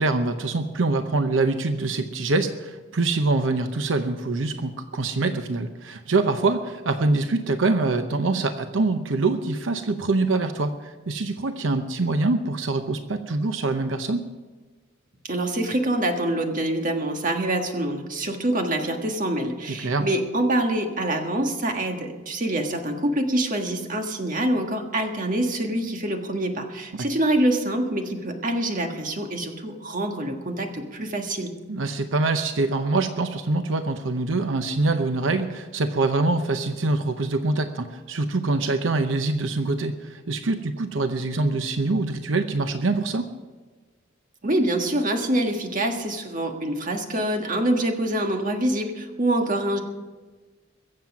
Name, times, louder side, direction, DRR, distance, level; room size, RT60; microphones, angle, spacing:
voice 1, 0.0-14.3 19.7-20.0 31.7-43.3, right 3 dB, 80° right, 8 dB, 0.8 m, -24 dB
voice 2, 15.2-31.5 44.4-49.8, right 1 dB, 45° right, 4 dB, 1.6 m, -25 dB
22.5 x 7.6 x 6.0 m, 1.3 s
head